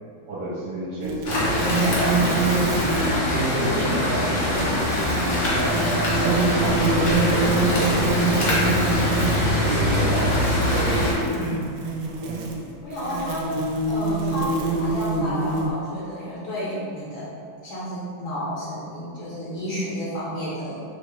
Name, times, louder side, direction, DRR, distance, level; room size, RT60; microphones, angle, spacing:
voice 1, 0.3-2.8 3.3-4.9 5.5-9.0 9.4-11.1 11.3-11.5 12.2-12.4, right 2 dB, 65° right, -8 dB, 1.5 m, -30 dB
sound 1, 1.0-3.3 4.6-15.7, right 3 dB, 85° right, 1.5 m, -26 dB
sound 2, 1.2-11.1, left 1 dB, 55° left, 0.8 m, -23 dB
voice 2, 12.8-13.5 13.9-17.3 17.6-20.8, equal, 70° left, -9 dB, 1.6 m, -31 dB
5.4 x 2.5 x 3.2 m, 2.3 s
omnidirectional pair, 2.3 m